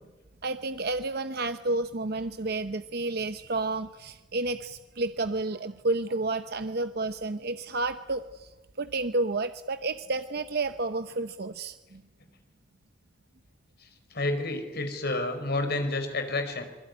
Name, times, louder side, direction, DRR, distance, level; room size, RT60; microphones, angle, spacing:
voice 1, 0.4-8.5 8.8-12.0, right 2 dB, 55° right, 10 dB, 0.9 m, -31 dB
voice 2, 14.1-16.6, left 2 dB, 60° left, 7 dB, 5.0 m, -29 dB
25.5 x 22.0 x 9.7 m, 1.1 s
head